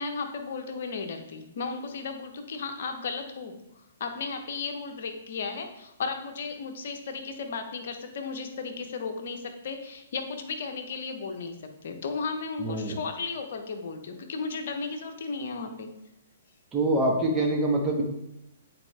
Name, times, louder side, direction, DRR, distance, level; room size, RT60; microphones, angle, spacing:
voice 1, 0.0-3.5 4.0-11.6 11.8-15.9, left 4 dB, 60° left, 5 dB, 0.9 m, -35 dB
voice 2, 12.6-13.0 16.7-18.0, right 1 dB, 20° right, -1 dB, 1.4 m, -25 dB
8.7 x 4.3 x 3.3 m, 0.85 s
figure-of-eight pair, 120°, 0 cm